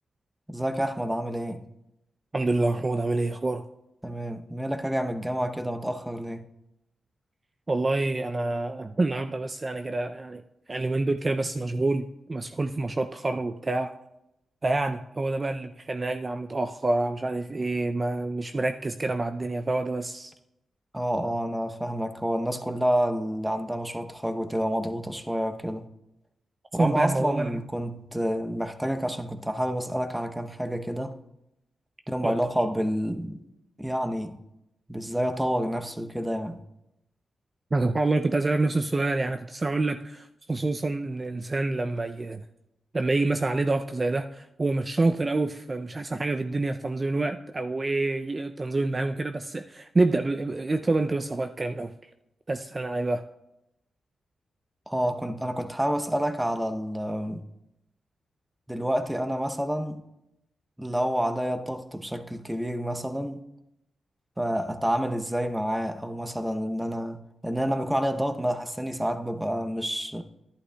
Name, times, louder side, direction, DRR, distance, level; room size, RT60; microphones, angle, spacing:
voice 1, 0.5-1.6 4.0-6.4 20.9-25.9 26.7-31.2 32.1-33.4 33.8-34.4 34.9-36.6 54.9-57.4 58.7-60.0 60.8-63.4 64.4-70.2, equal, 5° right, 0.7 m, -29 dB
voice 2, 2.3-3.6 7.7-10.4 10.7-13.9 14.6-20.3 26.8-27.6 32.2-32.4 37.7-42.4 42.9-51.9 52.5-53.2, right 2 dB, 30° right, 0.4 m, -27 dB
11.0 x 11.0 x 2.2 m
cardioid pair, 75°, 0 cm